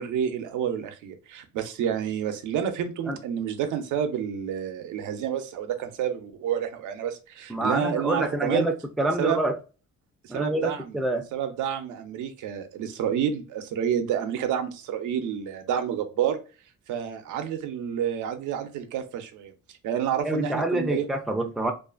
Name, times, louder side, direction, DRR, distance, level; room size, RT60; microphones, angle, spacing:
voice 1, 0.0-8.7 9.2-9.4 10.2-11.0 11.3-16.4 16.9-19.5 19.8-21.1, right 9 dB, 85° right, 0.6 m, -29 dB
voice 2, 7.5-9.5 10.3-11.2 20.2-21.7, right 1 dB, ahead, 0.4 m, -27 dB
2.5 x 2.4 x 2.3 m
cardioid pair, 90°, 30 cm